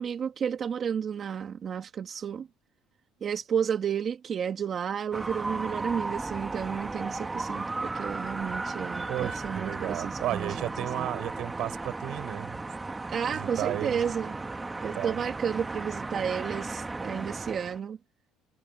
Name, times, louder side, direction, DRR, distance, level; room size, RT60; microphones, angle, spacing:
voice 1, 0.0-2.5 3.2-11.1 13.1-14.4 14.8-18.0, right 7 dB, 35° right, 2.1 m, -32 dB
sound 1, 5.1-17.8, right 3 dB, 15° right, 1.6 m, -35 dB
voice 2, 9.1-12.6 13.3-14.1 14.9-15.2, right 14 dB, 60° right, 5.0 m, -34 dB
cardioid pair, 135°, 0 cm